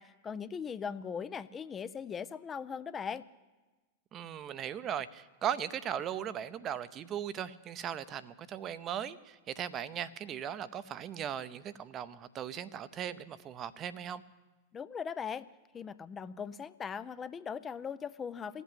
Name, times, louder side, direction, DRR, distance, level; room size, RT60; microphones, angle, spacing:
voice 1, 0.0-3.3 14.7-15.5 15.7-18.6, left 6 dB, 20° left, 14 dB, 0.5 m, -39 dB
voice 2, 4.1-14.2, right 9 dB, 30° right, 15 dB, 0.7 m, -38 dB
15.5 x 8.2 x 9.9 m, 1.2 s
figure-of-eight pair, 90°, 0 cm